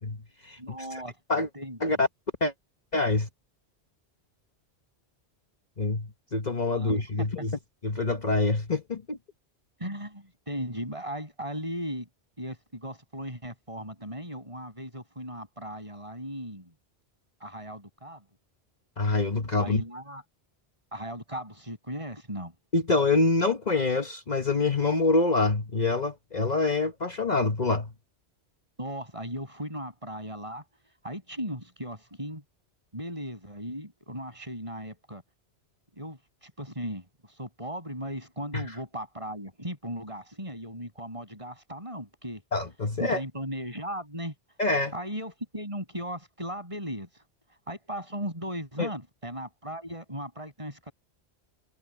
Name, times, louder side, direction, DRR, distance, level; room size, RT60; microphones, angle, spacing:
voice 1, 0.0-0.6 0.9-1.0 1.3-1.5 1.8-2.1 2.4-2.5 2.9-3.3 5.8-9.2 19.0-19.8 22.7-27.9 38.5-38.6 42.5-43.2 44.6-44.9 48.8-48.9, left 3 dB, 40° left, 1.3 m, -26 dB
voice 2, 0.6-1.2 1.5-2.0 6.7-6.9 7.2-7.3 9.8-12.1 12.4-16.7 17.4-18.2 19.6-20.2 20.9-22.5 28.8-30.6 31.0-32.4 32.9-35.2 36.0-42.4 43.0-44.3 44.9-47.2 47.7-50.9, equal, 30° right, 6.9 m, -37 dB
omnidirectional pair, 1.1 m